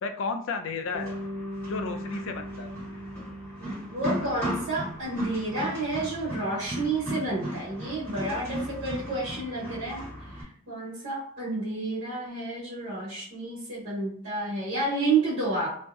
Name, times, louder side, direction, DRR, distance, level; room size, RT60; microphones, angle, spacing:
voice 1, 0.0-1.1 1.7-2.7 4.3-4.4, left 4 dB, 60° left, 6 dB, 0.3 m, -33 dB
Bass guitar, 0.9-5.2, equal, 25° right, 0.3 m, -39 dB
sound 1, 1.0-10.4, equal, 10° left, 0.9 m, -36 dB
voice 2, 3.6-10.0 10.3-15.8, right 2 dB, 65° right, -7 dB, 0.8 m, -30 dB
2.6 x 2.0 x 2.3 m, 0.62 s
head